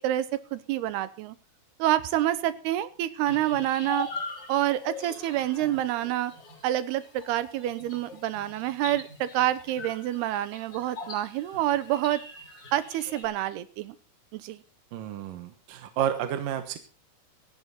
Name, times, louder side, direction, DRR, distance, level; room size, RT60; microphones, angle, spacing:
voice 1, 0.0-1.4 1.8-4.1 4.5-6.3 6.6-12.2 12.7-14.0 14.3-14.6, right 13 dB, 85° right, 15 dB, 2.9 m, -27 dB
sound 1, 3.3-13.3, left 2 dB, 30° left, 3.8 m, -42 dB
voice 2, 14.9-16.8, right 10 dB, 65° right, 8 dB, 2.7 m, -31 dB
17.5 x 13.5 x 4.1 m, 0.34 s
omnidirectional pair, 4.5 m